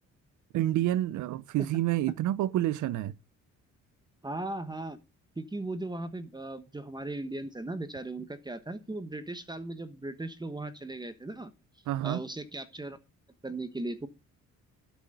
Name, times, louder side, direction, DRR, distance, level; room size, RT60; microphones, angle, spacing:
voice 1, 0.5-3.1 11.9-12.2, right 13 dB, 80° right, 0.7 m, -28 dB
voice 2, 4.2-5.0 5.4-11.5 12.0-13.0 13.4-14.1, right 2 dB, 15° right, 1.2 m, -37 dB
12.0 x 6.2 x 6.7 m
cardioid pair, 90°, 30 cm